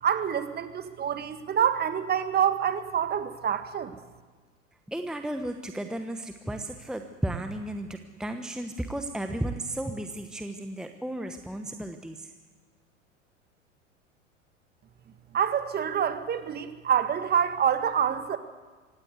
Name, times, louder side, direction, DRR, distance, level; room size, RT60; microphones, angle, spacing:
voice 1, 0.0-3.9 15.3-18.4, right 8 dB, 25° right, 10 dB, 1.7 m, -26 dB
voice 2, 4.9-12.3, right 1 dB, ahead, 7 dB, 1.1 m, -34 dB
25.0 x 17.5 x 8.2 m, 1.4 s
figure-of-eight pair, 90°, 40 cm